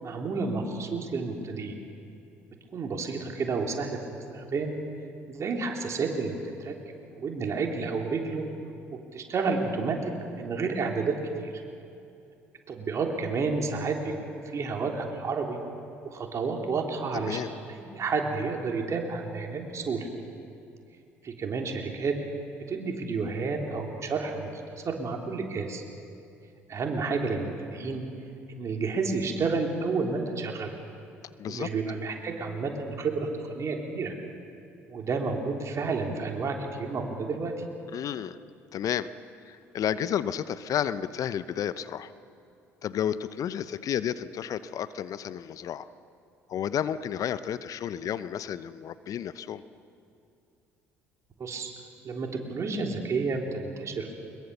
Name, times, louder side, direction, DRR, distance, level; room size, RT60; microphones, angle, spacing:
voice 1, 0.0-1.7 2.7-4.0 4.3-4.8 5.3-6.3 6.6-6.8 7.1-8.4 9.1-11.5 12.7-15.6 16.0-20.1 21.2-22.1 22.7-25.8 26.7-28.0 28.6-30.7 31.5-34.1 34.9-37.5 51.4-51.7 52.0-54.1, right 4 dB, 45° right, 2 dB, 3.4 m, -30 dB
voice 2, 17.1-17.5 31.4-31.7 37.9-38.4 38.7-39.1 39.5-42.1 42.8-45.9 46.5-49.6, left 9 dB, 50° left, 15 dB, 0.7 m, -31 dB
22.0 x 21.5 x 6.9 m, 2.6 s
hypercardioid pair, 55°, 7 cm